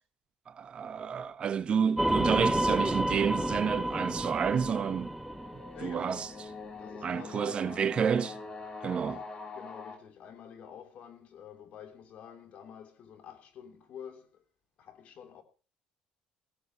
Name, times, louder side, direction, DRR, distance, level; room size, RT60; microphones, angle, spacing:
voice 1, 0.5-5.1 5.8-6.3 7.0-8.4 8.8-9.2, right 7 dB, 45° right, 1.0 m, -29 dB
sound 1, 2.0-6.4, right 1 dB, 5° right, 1.1 m, -30 dB
sound 2, 3.5-10.0, left 4 dB, 35° left, 3.4 m, -45 dB
voice 2, 5.7-6.3 6.8-8.0 9.1-9.3 9.5-14.4 14.8-15.4, left 8 dB, 60° left, 3.3 m, -48 dB
17.0 x 16.5 x 2.9 m
cardioid pair, 95°, 3 cm